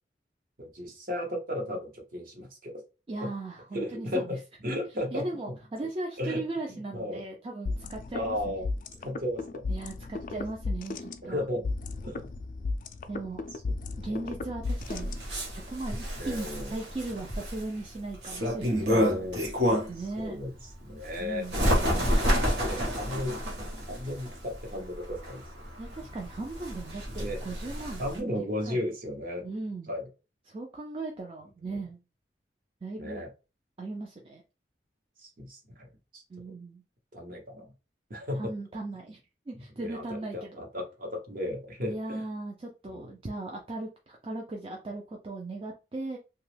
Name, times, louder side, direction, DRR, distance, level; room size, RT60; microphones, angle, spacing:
voice 1, 0.6-2.8 3.2-3.3 3.7-5.3 6.2-6.4 6.7-7.2 8.1-8.7 9.0-9.6 11.2-11.7 12.0-12.3 16.2-16.7 18.9-19.5 20.0-20.5 20.8-21.5 22.6-23.4 23.9-25.4 27.2-27.4 28.0-29.5 29.9-30.1 33.0-33.3 35.2-35.9 36.1-36.2 37.1-37.7 38.1-38.5 39.8-42.2 42.9-43.1, left 1 dB, 50° right, 1 dB, 0.9 m, -35 dB
voice 2, 3.1-4.4 5.1-8.6 9.7-11.4 13.1-13.4 14.0-15.2 15.5-18.9 19.7-20.4 21.2-22.2 25.8-28.0 28.4-28.8 29.4-29.9 30.5-32.0 32.8-33.2 33.8-34.4 36.3-36.8 38.4-39.2 39.5-40.6 41.9-46.2, right 2 dB, 30° right, 0 dB, 0.4 m, -38 dB
sound 1, 7.7-15.6, left 3 dB, 45° left, 0.3 m, -35 dB
Bird, 14.6-20.1 20.5-28.2, equal, 75° right, 1.1 m, -30 dB
2.9 x 2.3 x 3.2 m, 0.30 s
head